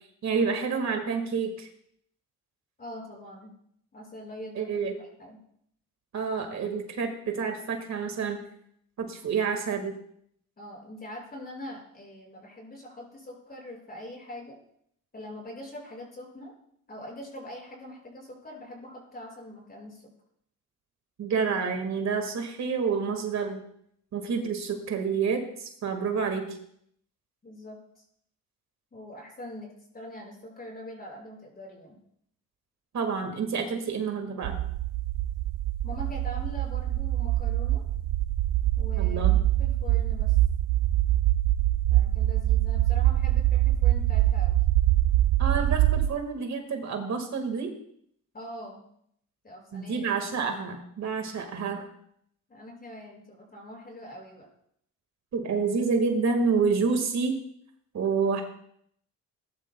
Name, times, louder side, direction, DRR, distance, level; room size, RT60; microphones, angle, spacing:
voice 1, 0.2-1.7 4.6-4.9 6.1-8.5 9.0-9.9 21.2-23.6 24.1-26.6 32.9-34.6 39.0-39.5 45.4-47.7 49.7-51.9 55.3-57.4 57.9-58.4, right 5 dB, 55° right, 5 dB, 1.8 m, -28 dB
voice 2, 2.8-3.5 3.9-5.4 10.6-14.6 15.1-16.5 16.9-20.0 27.4-28.0 28.9-32.0 35.8-37.8 38.8-39.2 39.6-40.4 41.9-44.6 48.3-48.8 49.4-50.1 52.5-54.5, left 1 dB, 25° left, -1 dB, 6.0 m, -43 dB
sound 1, 34.4-46.1, right 14 dB, 85° right, 0.6 m, -24 dB
19.0 x 11.5 x 2.3 m, 0.69 s
cardioid pair, 115°, 33 cm